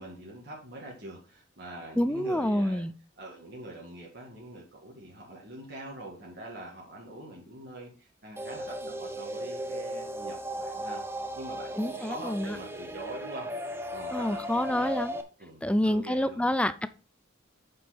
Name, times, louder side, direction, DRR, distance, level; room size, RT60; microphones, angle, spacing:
voice 1, 0.0-2.9 3.2-13.5 13.9-15.0 15.4-16.5, right 1 dB, 55° right, -3 dB, 2.0 m, -44 dB
voice 2, 2.0-2.9 11.8-12.6 14.1-15.1 15.6-16.9, left 1 dB, 5° left, 14 dB, 0.4 m, -27 dB
sound 1, 8.4-15.2, equal, 10° right, 0.8 m, -36 dB
8.5 x 5.5 x 4.2 m, 0.36 s
head